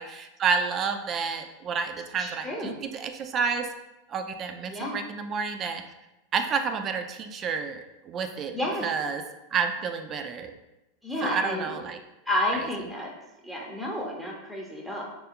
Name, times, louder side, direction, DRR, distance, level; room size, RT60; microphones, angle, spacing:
voice 1, 0.0-3.7 4.1-5.8 6.3-8.5 8.8-9.2 9.5-10.5 11.2-12.0, right 5 dB, 35° right, 6 dB, 0.3 m, -30 dB
voice 2, 2.2-2.7 4.7-5.0 8.5-8.9 11.0-11.7 12.3-13.1 13.4-15.0, left 1 dB, ahead, -2 dB, 0.6 m, -30 dB
3.3 x 2.3 x 2.9 m, 0.96 s
hypercardioid pair, 110°, 0 cm